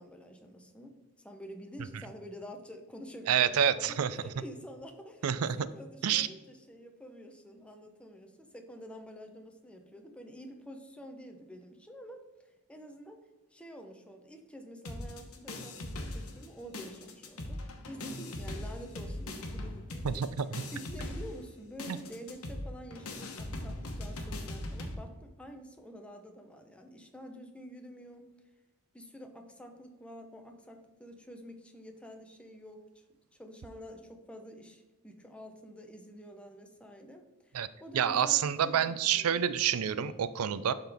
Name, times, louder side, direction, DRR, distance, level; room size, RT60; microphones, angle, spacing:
voice 1, 0.0-5.3 5.6-12.2 12.7-13.2 13.5-17.6 17.9-20.2 20.7-28.3 28.9-32.8 33.4-39.6 39.9-40.1, equal, 5° left, 4 dB, 0.8 m, -48 dB
voice 2, 3.3-4.2 5.2-5.7 6.0-6.3 20.0-20.5 21.9-22.0 37.5-37.7 37.9-40.7, right 8 dB, 85° right, 15 dB, 0.4 m, -28 dB
sound 1, 14.8-16.5 16.7-25.0, left 1 dB, 85° left, 1.1 m, -40 dB
11.5 x 3.9 x 3.5 m, 1.1 s
head